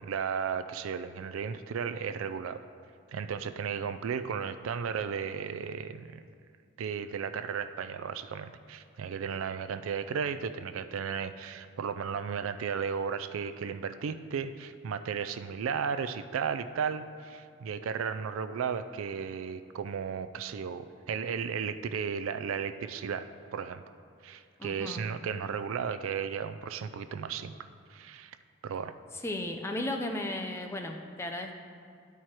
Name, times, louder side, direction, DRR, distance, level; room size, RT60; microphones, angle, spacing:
voice 1, 0.0-2.7 3.1-6.2 6.8-23.8 24.2-27.5 27.9-28.4 28.6-28.9, right 6 dB, 75° right, 11 dB, 0.3 m, -34 dB
voice 2, 24.6-25.0 29.1-31.5, left 1 dB, 10° left, 3 dB, 0.4 m, -35 dB
10.5 x 4.7 x 4.4 m, 2.3 s
head